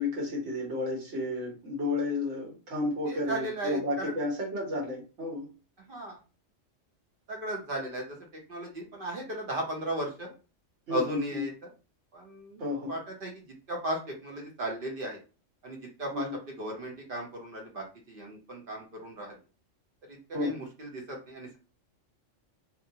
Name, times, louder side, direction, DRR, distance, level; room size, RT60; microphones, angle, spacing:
voice 1, 0.0-5.5 10.9-11.4 12.6-13.0 16.1-16.4 20.3-20.6, left 2 dB, 65° right, -2 dB, 1.3 m, -32 dB
voice 2, 3.1-4.1 5.9-6.2 7.3-8.2 8.5-10.3 10.9-11.5 12.1-15.2 15.6-16.3 16.6-19.4 20.3-21.6, right 1 dB, 50° right, 0 dB, 0.9 m, -36 dB
2.7 x 2.1 x 2.7 m, 0.33 s
omnidirectional pair, 1.3 m